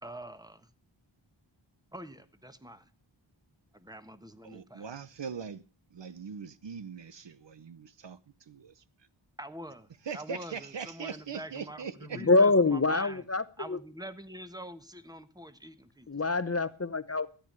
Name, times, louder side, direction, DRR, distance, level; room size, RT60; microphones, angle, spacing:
voice 1, 0.0-0.7 1.9-2.9 3.7-4.9 9.4-9.9 10.1-13.2 13.6-16.1, right 1 dB, 10° right, 1.2 m, -45 dB
voice 2, 4.4-5.6 5.9-8.2 8.5-8.8 10.1-12.2, right 6 dB, 65° right, 0.9 m, -41 dB
voice 3, 12.2-13.8 16.1-17.3, left 3 dB, 30° left, 0.8 m, -25 dB
14.0 x 9.0 x 6.6 m
wide cardioid pair, 50°, 47 cm